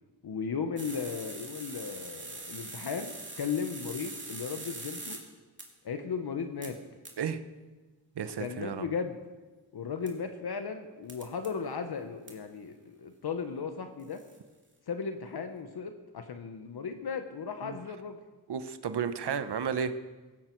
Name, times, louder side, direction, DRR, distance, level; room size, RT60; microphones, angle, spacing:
voice 1, 0.2-5.2 5.8-6.8 8.4-9.2 9.7-14.2 14.9-18.2, left 6 dB, 60° left, 7 dB, 1.1 m, -36 dB
sound 1, 0.8-5.2 5.6-5.7 6.6-6.7 7.0-7.1 10.1-10.2 11.1-11.5 12.3-12.4 14.0-14.4, right 2 dB, 25° right, 2.7 m, -42 dB
voice 2, 8.2-8.8 17.6-17.8 18.5-19.9, right 7 dB, 65° right, 10 dB, 1.0 m, -32 dB
16.5 x 15.0 x 4.6 m, 1.3 s
wide cardioid pair, 105°, 43 cm